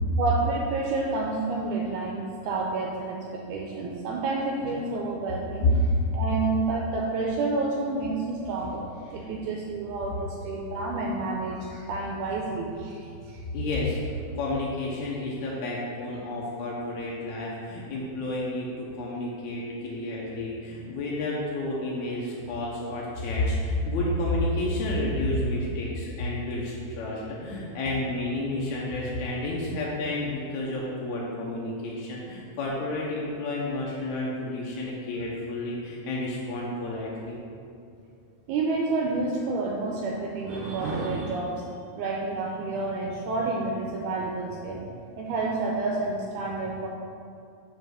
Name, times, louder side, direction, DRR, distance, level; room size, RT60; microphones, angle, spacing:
voice 1, 0.2-5.7 6.1-8.9 9.1-13.0 27.4-27.5 38.5-41.6 42.0-44.8 45.2-46.9, right 3 dB, 80° right, -1 dB, 2.0 m, -29 dB
voice 2, 13.5-14.0 14.3-37.4, left 2 dB, 75° left, -5 dB, 2.1 m, -30 dB
5.2 x 5.0 x 6.2 m, 2.4 s
omnidirectional pair, 3.6 m